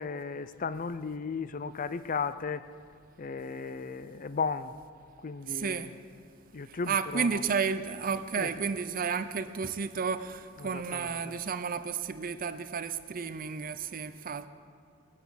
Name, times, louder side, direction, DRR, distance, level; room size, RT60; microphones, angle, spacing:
voice 1, 0.0-2.6 3.2-4.7 5.2-5.9 6.5-7.4 8.4-8.5 10.6-11.3, left 5 dB, 40° left, 14 dB, 0.5 m, -35 dB
voice 2, 5.5-5.9 6.7-14.5, right 6 dB, 45° right, 11 dB, 0.5 m, -32 dB
19.5 x 10.0 x 7.1 m, 2.3 s
head